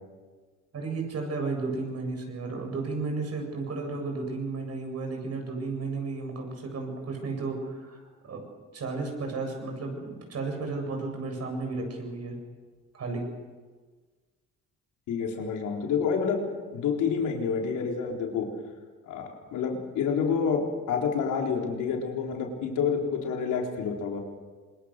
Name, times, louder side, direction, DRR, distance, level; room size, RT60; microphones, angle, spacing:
voice 1, 0.7-8.4 8.7-12.3 12.9-13.2, right 3 dB, 55° right, 2 dB, 7.9 m, -33 dB
voice 2, 15.1-16.5 16.7-18.5 19.1-24.2, left 6 dB, 90° left, 1 dB, 4.0 m, -28 dB
26.0 x 22.0 x 6.7 m, 1.4 s
cardioid pair, 90°, 30 cm